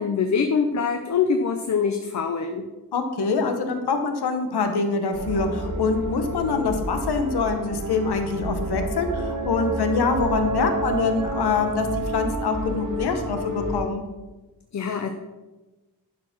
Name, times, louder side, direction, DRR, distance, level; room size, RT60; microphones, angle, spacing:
voice 1, 0.0-2.6 14.7-15.1, left 6 dB, 45° left, 6 dB, 0.6 m, -24 dB
voice 2, 2.9-14.0, left 4 dB, 80° left, 6 dB, 1.3 m, -25 dB
sound 1, 5.1-13.8, right 1 dB, 50° right, 1.3 m, -29 dB
11.0 x 4.9 x 6.0 m, 1.2 s
wide cardioid pair, 160°, 39 cm